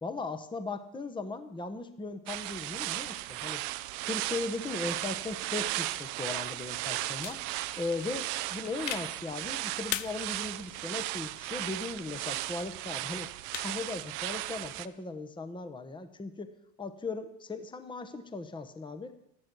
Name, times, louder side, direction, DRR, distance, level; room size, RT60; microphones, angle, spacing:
voice 1, 0.0-3.6 4.0-7.4 7.8-13.3 13.6-16.5 16.8-19.1, left 3 dB, 10° left, 10 dB, 1.0 m, -38 dB
sound 1, 2.3-14.9, right 17 dB, 65° right, 0.8 m, -36 dB
sound 2, 7.2-14.8, left 17 dB, 85° left, 0.6 m, -44 dB
13.5 x 13.0 x 4.6 m, 0.80 s
hypercardioid pair, 85°, 48 cm